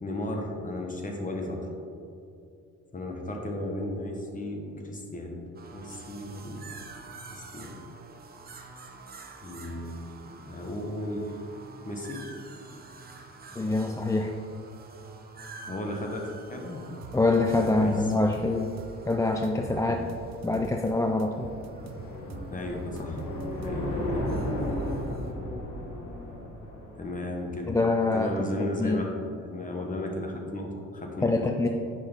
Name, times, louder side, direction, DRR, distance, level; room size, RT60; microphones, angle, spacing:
voice 1, 0.0-1.6 2.9-5.4 5.7-6.7 7.3-7.8 9.4-10.0 10.2-11.3 11.8-12.2 15.7-16.8 17.5-17.9 19.6-19.9 22.5-23.2 23.6-24.3 27.0-27.8 28.1-31.4, left 1 dB, 25° left, 1 dB, 1.2 m, -35 dB
sound 1, 5.5-25.3, right 3 dB, 30° right, 0.8 m, -48 dB
voice 2, 13.6-14.4 17.1-18.7 19.1-20.0 20.4-21.5 27.7-28.3 28.8-29.0 31.2-31.7, left 2 dB, 10° left, 3 dB, 0.3 m, -25 dB
sound 2, 17.0-19.1 19.4-20.9 21.2-24.1, right 7 dB, 60° right, 0.5 m, -45 dB
sound 3, 20.3-27.7, left 1 dB, 70° left, 1.7 m, -34 dB
8.2 x 5.2 x 3.5 m, 2.6 s
cardioid pair, 90°, 30 cm